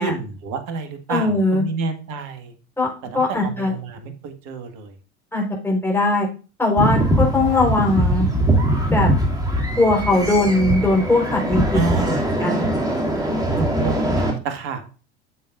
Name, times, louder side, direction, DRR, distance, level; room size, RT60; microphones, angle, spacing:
voice 1, 0.0-2.5 3.1-5.0 7.5-7.6 11.7-12.2 13.6-14.9, right 4 dB, 55° right, 7 dB, 1.8 m, -29 dB
voice 2, 1.1-1.6 2.8-2.9 3.1-3.7 5.3-6.3 6.6-8.3 8.9-9.1 9.8-11.8 12.4-12.7, left 2 dB, 5° left, -1 dB, 4.3 m, -19 dB
sound 1, 6.8-14.3, right 1 dB, 10° right, 2.6 m, -21 dB
9.3 x 7.6 x 2.6 m, 0.35 s
hypercardioid pair, 80°, 33 cm